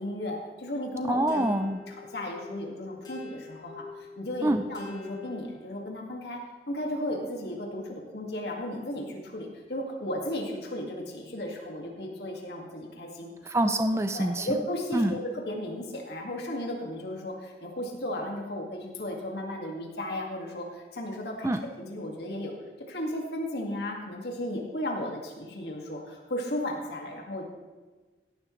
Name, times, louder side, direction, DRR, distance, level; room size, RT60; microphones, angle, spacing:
voice 1, 0.0-3.8 4.2-6.4 6.7-13.3 14.1-22.5 22.9-27.4, left 1 dB, 75° left, 0 dB, 2.1 m, -35 dB
voice 2, 1.0-1.8 4.4-4.6 13.5-14.5 14.9-15.1 21.4-21.6, right 1 dB, 15° right, 8 dB, 0.5 m, -25 dB
sound 1, 1.3-6.0, left 4 dB, 25° left, 4.0 m, -46 dB
17.0 x 11.0 x 3.2 m, 1.3 s
head